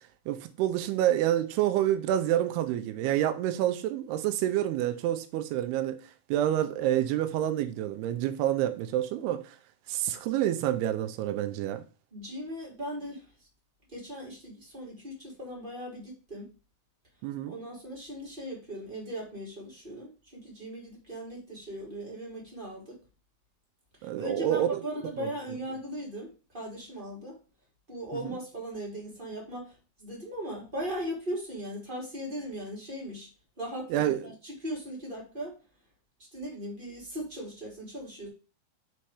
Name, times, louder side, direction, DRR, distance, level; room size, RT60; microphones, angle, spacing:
voice 1, 0.3-6.0 6.3-9.6 9.9-11.8 17.2-17.5 24.0-24.8 25.2-25.3 28.2-28.4 33.9-34.3, right 12 dB, 85° right, 2.3 m, -28 dB
voice 2, 12.1-13.2 13.9-16.4 17.5-23.0 24.2-27.3 27.9-29.7 30.0-33.3 33.6-35.5 36.3-38.3, equal, 15° right, 1.7 m, -38 dB
6.5 x 4.4 x 4.8 m
omnidirectional pair, 5.3 m